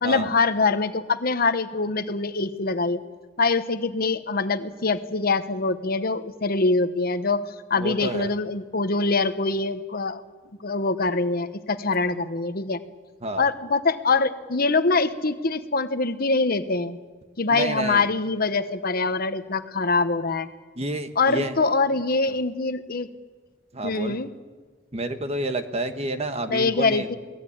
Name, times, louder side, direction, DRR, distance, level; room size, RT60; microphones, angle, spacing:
voice 1, 0.0-3.0 3.4-7.4 7.7-10.2 10.6-12.8 13.4-17.0 17.4-20.5 21.2-23.1 23.8-24.3 26.5-27.2, left 3 dB, 50° left, 10 dB, 1.1 m, -24 dB
voice 2, 7.8-8.3 13.2-13.5 17.5-18.0 20.8-21.6 23.7-24.2 24.9-27.1, right 1 dB, 35° right, 8 dB, 1.4 m, -29 dB
24.0 x 18.0 x 8.7 m, 1.4 s
head